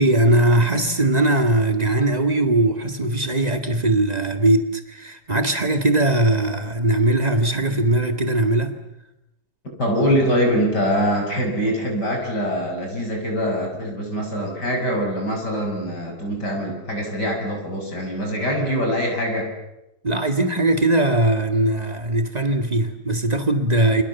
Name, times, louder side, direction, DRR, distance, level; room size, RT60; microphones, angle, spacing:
voice 1, 0.0-8.7 20.0-24.0, right 1 dB, 30° right, 7 dB, 0.7 m, -20 dB
voice 2, 9.8-19.5, equal, 30° left, 2 dB, 6.9 m, -23 dB
29.5 x 27.0 x 7.2 m, 0.89 s
omnidirectional pair, 3.9 m